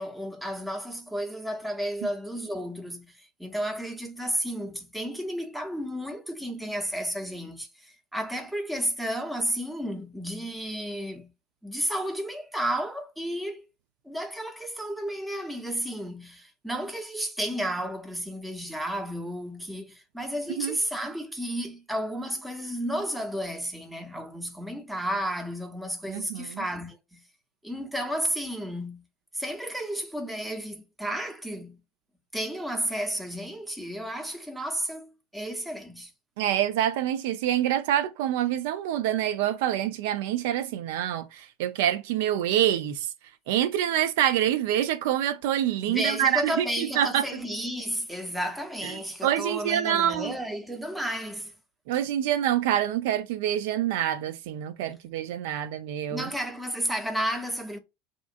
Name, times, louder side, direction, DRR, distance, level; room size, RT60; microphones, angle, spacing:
voice 1, 0.0-11.3 11.6-13.7 14.0-27.2 27.6-29.0 29.3-31.8 32.3-36.1 45.9-51.5 56.1-57.8, equal, 5° right, 0.8 m, -32 dB
voice 2, 26.1-26.6 36.4-43.1 43.5-47.2 48.8-48.9 49.2-50.3 51.9-56.3, right 11 dB, 65° right, 0.5 m, -26 dB
2.8 x 2.2 x 2.6 m
figure-of-eight pair, 75°, 0 cm